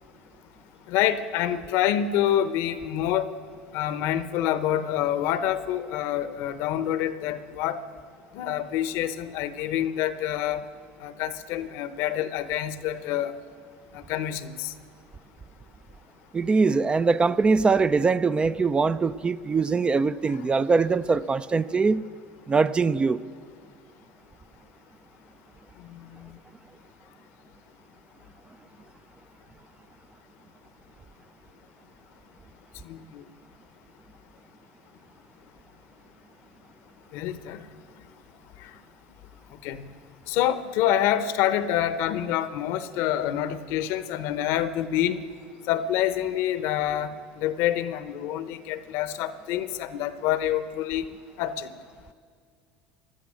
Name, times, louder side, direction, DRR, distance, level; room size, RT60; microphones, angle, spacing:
voice 1, 0.9-3.3 3.7-7.8 8.3-10.7 11.0-13.3 13.9-14.7 25.8-26.4 32.8-33.2 37.1-37.6 38.6-38.7 39.6-39.9 40.3-45.2 45.7-51.0 51.4-51.7, left 11 dB, 65° left, 0.8 m, -27 dB
voice 2, 16.3-22.0 22.5-23.2, right 4 dB, 20° right, 0.4 m, -22 dB
16.5 x 12.0 x 6.3 m
hypercardioid pair, 80°, 4 cm